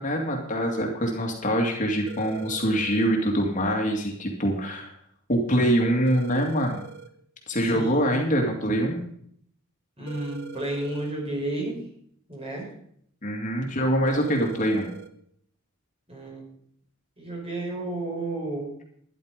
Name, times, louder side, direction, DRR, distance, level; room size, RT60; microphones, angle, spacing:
voice 1, 0.0-4.9 5.3-6.8 7.5-9.0 13.2-14.9, equal, 35° left, 1 dB, 2.4 m, -24 dB
sound 1, 2.1-3.1 6.1-7.1 10.1-11.1 14.1-15.1, right 6 dB, 55° right, 1.1 m, -42 dB
voice 2, 7.7-8.2 10.0-11.8 12.3-12.7 16.1-16.4 17.2-18.7, right 2 dB, 30° right, -1 dB, 5.3 m, -32 dB
12.0 x 11.0 x 5.2 m, 0.65 s
head